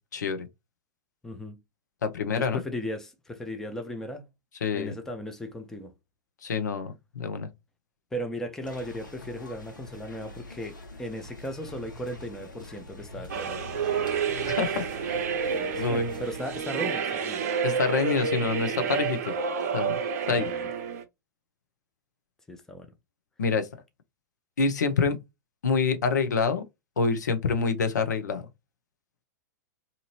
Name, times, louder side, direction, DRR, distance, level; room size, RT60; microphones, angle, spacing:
voice 1, 0.1-0.5 2.0-2.6 4.6-4.9 6.4-7.5 14.5-15.2 15.8-16.1 17.6-19.3 19.7-20.0 20.3-20.5 23.4-23.7 24.6-25.2 25.6-26.6 27.0-28.5, left 4 dB, 65° left, 0.7 m, -26 dB
voice 2, 1.2-1.6 2.4-4.3 4.7-5.9 8.1-13.6 15.5-17.4 20.3-20.6 22.5-22.9, equal, 5° left, 0.5 m, -37 dB
sound 1, 8.6-16.6, left 2 dB, 80° left, 1.1 m, -44 dB
sound 2, 13.3-21.0, right 6 dB, 50° right, 0.6 m, -29 dB
2.8 x 2.6 x 2.7 m
figure-of-eight pair, 100°, 10 cm